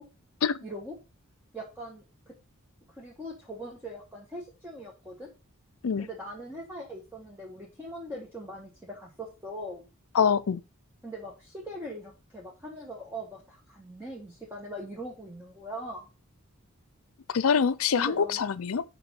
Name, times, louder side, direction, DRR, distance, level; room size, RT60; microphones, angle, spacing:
voice 1, 0.6-0.9 1.5-2.3 3.0-5.3 6.0-9.9 11.0-16.1 17.9-18.4, right 1 dB, 10° right, 1.4 m, -41 dB
voice 2, 10.1-10.6 17.3-18.8, left 6 dB, 75° left, 0.5 m, -25 dB
5.8 x 5.2 x 5.3 m
head